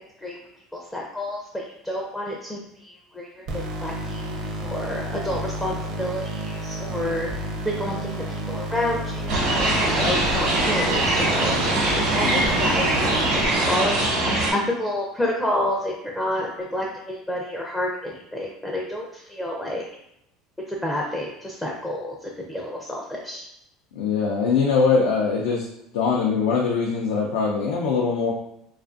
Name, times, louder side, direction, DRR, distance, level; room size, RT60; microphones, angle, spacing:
voice 1, 0.7-4.3 4.6-19.9 20.7-23.5, left 1 dB, 5° left, -2 dB, 0.4 m, -29 dB
sound 1, 3.5-13.5, right 1 dB, 55° right, 0.6 m, -31 dB
sound 2, 9.3-14.5, right 1 dB, 75° right, 1.0 m, -22 dB
voice 2, 23.9-25.7 25.9-28.3, left 5 dB, 85° left, -2 dB, 0.4 m, -22 dB
2.5 x 2.4 x 2.4 m, 0.78 s
supercardioid pair, 105°, 0 cm